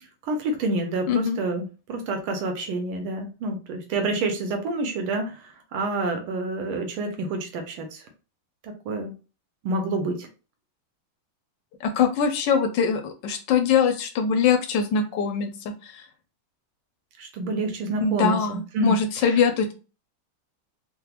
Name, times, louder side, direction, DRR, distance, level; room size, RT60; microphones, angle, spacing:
voice 1, 0.2-8.0 8.6-9.2 9.6-10.3 17.2-19.4, right 2 dB, 80° right, 4 dB, 1.5 m, -28 dB
voice 2, 1.1-1.4 11.8-16.0 18.0-19.7, left 6 dB, 75° left, 6 dB, 1.1 m, -23 dB
3.8 x 2.1 x 2.9 m, 0.33 s
omnidirectional pair, 2.4 m